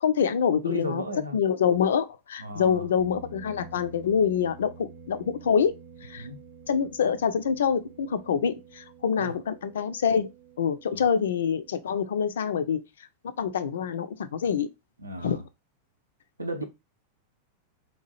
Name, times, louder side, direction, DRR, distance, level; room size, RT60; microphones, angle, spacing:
voice 1, 0.0-1.0 1.3-5.7 6.0-6.3 6.7-10.3 10.6-12.8 13.4-14.7 15.2-15.4, left 7 dB, 65° left, 0.3 m, -26 dB
voice 2, 0.6-1.4 2.4-2.9 6.2-6.4 9.2-9.3 10.9-11.0 15.0-15.4 16.4-16.6, right 1 dB, 80° right, 0.5 m, -34 dB
sound 1, 3.0-12.0, right 5 dB, 45° right, 0.7 m, -49 dB
2.8 x 2.3 x 2.9 m
figure-of-eight pair, 90°, 0 cm